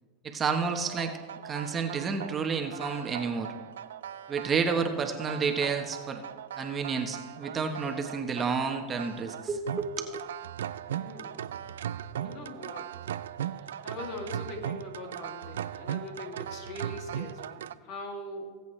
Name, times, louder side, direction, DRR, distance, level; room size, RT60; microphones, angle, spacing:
voice 1, 0.2-1.1 1.4-3.5 4.3-6.2 6.6-10.2, right 5 dB, 25° right, 5 dB, 1.3 m, -30 dB
sound 1, 0.8-17.7, right 10 dB, 85° right, 0.4 m, -39 dB
voice 2, 10.9-11.6 12.2-13.0 13.5-18.5, left 2 dB, 55° left, 2 dB, 2.7 m, -42 dB
19.5 x 8.2 x 3.3 m, 1.4 s
hypercardioid pair, 110°, 0 cm